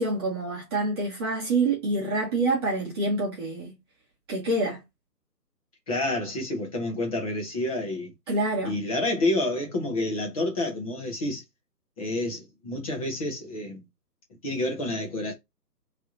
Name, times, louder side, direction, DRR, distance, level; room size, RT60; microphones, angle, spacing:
voice 1, 0.0-3.7 4.3-4.8 8.3-8.8, right 2 dB, 15° right, 1.5 m, -26 dB
voice 2, 5.9-8.1 8.6-11.4 12.0-13.8 14.4-15.3, left 1 dB, 20° left, 1.4 m, -29 dB
3.4 x 3.3 x 4.1 m
figure-of-eight pair, 155°, 49 cm